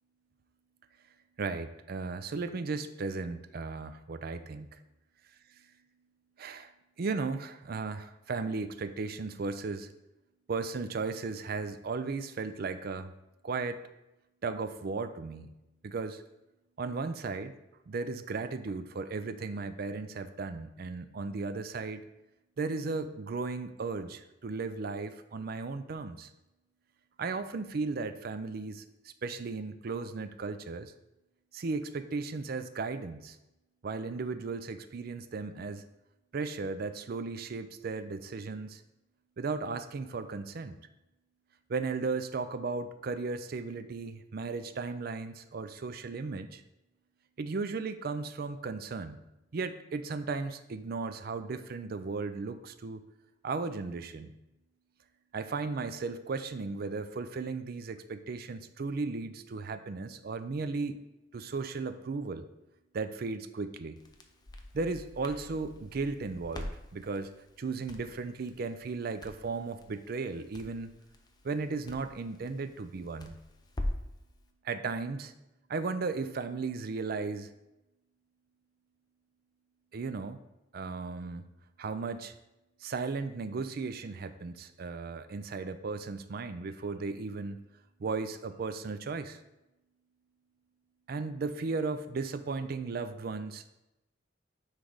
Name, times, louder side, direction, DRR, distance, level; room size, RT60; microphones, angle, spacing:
voice 1, 1.4-4.7 6.4-6.7 7.0-9.9 10.5-13.1 13.4-13.8 14.4-15.5 15.8-16.2 16.8-17.5 17.9-22.0 22.6-26.3 27.2-28.8 29.2-30.9 31.5-33.4 33.8-35.8 36.3-38.8 39.4-40.8 41.7-46.6 47.4-49.2 49.5-53.0 53.4-54.3 55.3-61.0 61.3-62.5 62.9-64.0 64.7-67.3 67.6-70.9 71.4-73.4 74.6-75.3 75.7-77.5 79.9-80.4 80.7-81.4 81.8-82.3 82.8-87.6 88.0-89.4 91.1-93.7, right 4 dB, 55° right, 11 dB, 0.4 m, -35 dB
Crackle, 64.0-74.2, left 1 dB, 20° left, 0.6 m, -43 dB
9.4 x 3.3 x 3.9 m, 0.94 s
head